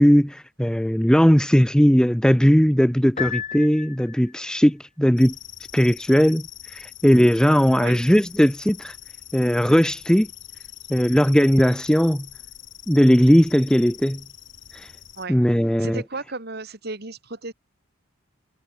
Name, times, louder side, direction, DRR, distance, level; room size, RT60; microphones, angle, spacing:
voice 1, 0.0-5.4 5.7-8.9 9.3-10.3 10.9-12.3 12.9-14.2 14.7-14.9 15.3-16.0, equal, 5° left, 0.8 m, -18 dB
Piano, 3.2-4.4, left 7 dB, 35° left, 2.0 m, -32 dB
sound 1, 5.2-15.3, left 12 dB, 60° left, 2.9 m, -43 dB
voice 2, 15.8-17.5, right 3 dB, 50° right, 2.5 m, -34 dB
head